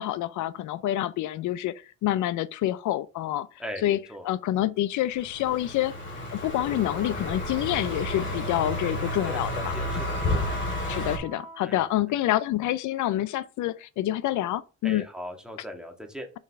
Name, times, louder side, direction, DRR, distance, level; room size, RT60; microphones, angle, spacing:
voice 1, 0.0-3.5 3.8-4.0 4.2-5.9 6.3-9.7 10.9-15.0, left 13 dB, 75° left, 0.5 m, -27 dB
voice 2, 3.6-4.3 9.2-10.5 11.6-11.9 14.8-16.3, equal, ahead, 1.6 m, -39 dB
Car passing by, 5.1-11.2, left 1 dB, 40° left, 2.7 m, -31 dB
Wind instrument woodwind instrument, 7.5-11.7, right 2 dB, 20° right, 1.4 m, -43 dB
5.6 x 5.5 x 3.5 m
cardioid pair, 90°, 30 cm